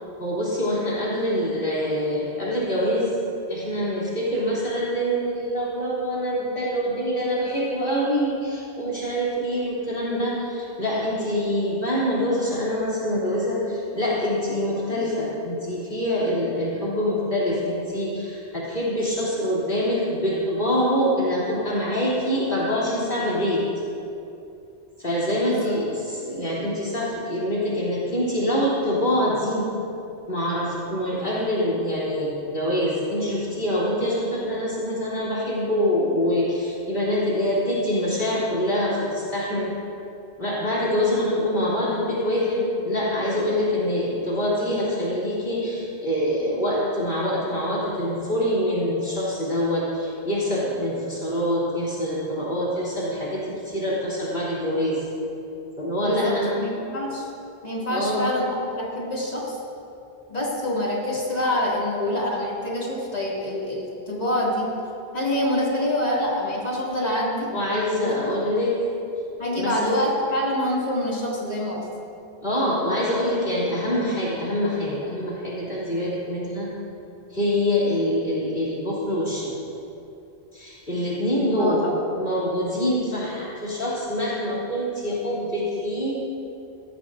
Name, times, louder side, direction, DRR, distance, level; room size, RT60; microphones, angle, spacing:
voice 1, 0.2-3.2 3.5-23.6 25.0-29.7 30.3-39.7 40.4-55.0 55.8-56.5 57.9-58.3 67.5-68.8 69.6-69.7 72.4-76.7 77.3-79.5 80.5-81.9 82.1-86.2, equal, 55° left, -7 dB, 3.5 m, -25 dB
voice 2, 56.0-57.3 57.6-59.6 60.3-64.7 65.1-67.5 68.0-68.1 69.4-71.8 81.6-82.0, left 1 dB, 35° left, -5 dB, 2.8 m, -26 dB
18.0 x 14.0 x 2.7 m, 2.7 s
omnidirectional pair, 1.1 m